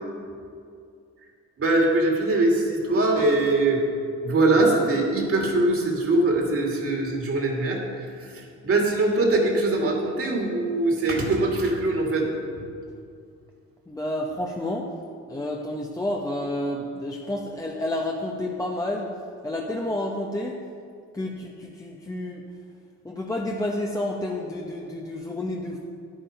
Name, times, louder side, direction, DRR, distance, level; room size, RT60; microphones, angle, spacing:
voice 1, 1.6-3.8 4.2-12.3, right 2 dB, 50° right, 0 dB, 2.5 m, -22 dB
voice 2, 13.9-14.9 15.3-19.1 19.4-20.6 21.1-22.4 23.0-25.8, left 1 dB, 10° left, -1 dB, 0.9 m, -30 dB
9.8 x 8.9 x 5.2 m, 2.4 s
cardioid pair, 90°, 30 cm